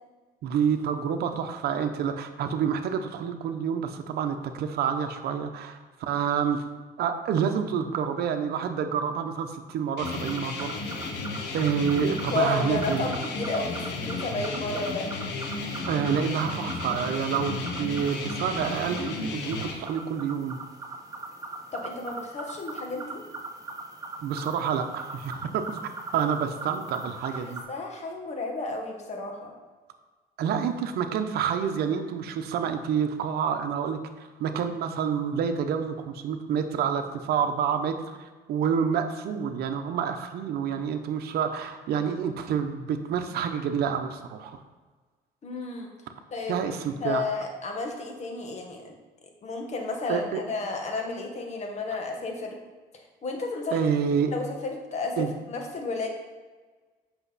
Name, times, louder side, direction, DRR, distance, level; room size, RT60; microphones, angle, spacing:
voice 1, 0.4-6.6 7.0-11.1 11.5-13.1 15.9-20.6 24.2-27.6 30.4-44.6 46.5-47.2 50.1-50.4 53.7-54.3 55.2-55.3, right 7 dB, 70° right, 6 dB, 0.8 m, -28 dB
sound 1, 10.0-19.7, left 3 dB, 80° left, 1.3 m, -33 dB
sound 2, 10.0-27.6, right 3 dB, 20° right, 1.1 m, -41 dB
voice 2, 12.3-15.1 21.7-23.2 27.4-29.5 45.4-45.9 46.3-46.6 47.0-49.0 49.4-52.6 53.2-53.9 54.3-56.1, left 3 dB, 40° left, 2 dB, 1.6 m, -32 dB
8.1 x 6.0 x 4.1 m, 1.3 s
cardioid pair, 110°, 17 cm